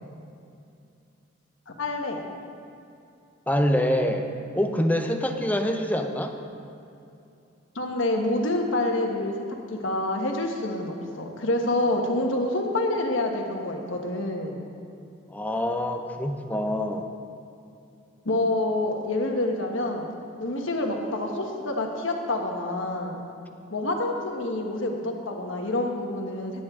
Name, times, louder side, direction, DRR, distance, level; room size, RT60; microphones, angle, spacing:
voice 1, 1.8-2.2 7.7-9.3 9.7-14.7 18.2-20.1 20.4-23.2 23.7-26.5, left 2 dB, 80° left, 2 dB, 1.3 m, -27 dB
voice 2, 3.5-4.3 4.5-6.4 15.3-17.1, equal, 10° left, 5 dB, 0.6 m, -25 dB
17.0 x 8.7 x 3.7 m, 2.6 s
head